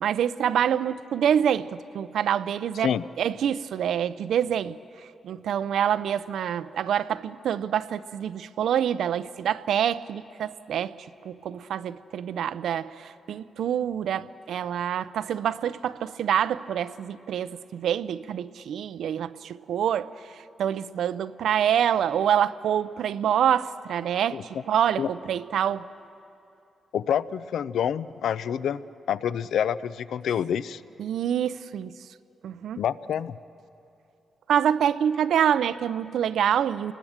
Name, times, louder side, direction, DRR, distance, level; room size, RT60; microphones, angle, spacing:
voice 1, 0.0-2.9 3.2-4.8 5.2-11.0 11.2-20.1 20.6-25.8 31.0-31.9 32.4-32.8 34.5-36.9, right 9 dB, 80° right, 0.6 m, -26 dB
voice 2, 26.9-28.8 29.1-30.8 32.8-33.4, left 9 dB, 80° left, 0.5 m, -27 dB
28.0 x 21.0 x 7.3 m
wide cardioid pair, 160°, 0 cm